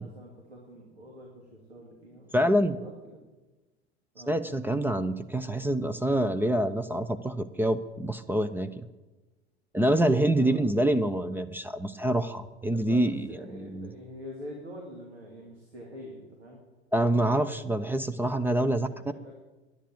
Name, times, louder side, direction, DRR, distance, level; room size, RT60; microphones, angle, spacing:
voice 1, 0.0-2.3 2.7-3.3 4.1-4.4 10.3-10.6 12.7-16.6 18.8-19.3, equal, 80° right, -1 dB, 2.6 m, -45 dB
voice 2, 2.3-2.8 4.3-8.9 9.7-13.9 16.9-18.9, right 1 dB, 5° right, 10 dB, 0.6 m, -26 dB
10.5 x 10.0 x 8.5 m, 1.2 s
figure-of-eight pair, 80°, 32 cm